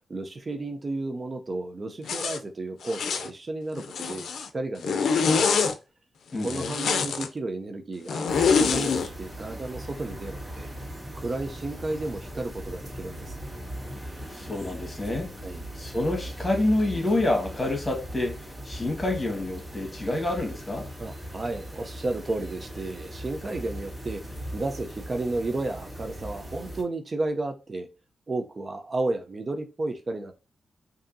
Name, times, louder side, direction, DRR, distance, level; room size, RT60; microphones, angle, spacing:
voice 1, 0.1-5.6 6.4-8.3 8.7-10.7 11.1-13.4 15.4-15.6 21.0-24.2 24.5-27.9 28.3-30.3, right 2 dB, 40° right, 0.6 m, -33 dB
Zipper (clothing), 2.1-2.4 2.8-3.3 3.8-4.5 4.8-5.7 6.4-7.3 8.1-9.1, left 5 dB, 85° left, 0.4 m, -25 dB
voice 2, 6.3-6.6 14.3-15.3 15.7-20.9, left 2 dB, 25° left, 1.6 m, -28 dB
sound 1, 8.3-26.8, equal, 20° right, 2.2 m, -39 dB
5.1 x 2.7 x 2.6 m
cardioid pair, 80°, 0 cm